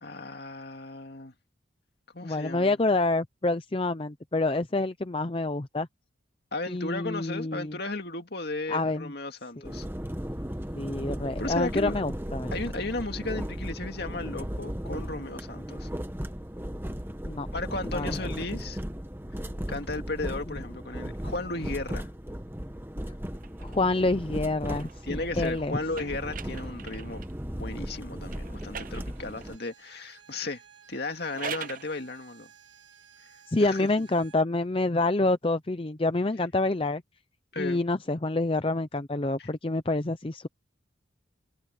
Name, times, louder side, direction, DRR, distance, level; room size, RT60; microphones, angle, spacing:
voice 1, 0.0-1.3 2.1-2.8 6.5-9.9 11.4-12.0 12.5-15.9 17.5-18.8 19.4-22.1 25.1-27.2 27.5-30.6 30.9-32.5 33.6-33.9 37.5-37.8 39.4-39.5, left 2 dB, 55° left, 2.3 m, -35 dB
voice 2, 2.2-5.9 6.7-7.8 8.7-9.1 9.6-9.7 10.8-12.5 17.2-17.5 17.9-18.2 23.6-25.8 33.5-37.0 37.6-40.5, left 2 dB, 30° left, 0.6 m, -27 dB
sound 1, 9.6-29.6, equal, 10° right, 1.2 m, -36 dB
sound 2, 23.4-27.4 28.3-29.6 31.1-31.9, right 7 dB, 45° right, 0.7 m, -43 dB
Bowed string instrument, 29.1-34.4, right 8 dB, 65° right, 3.7 m, -56 dB
head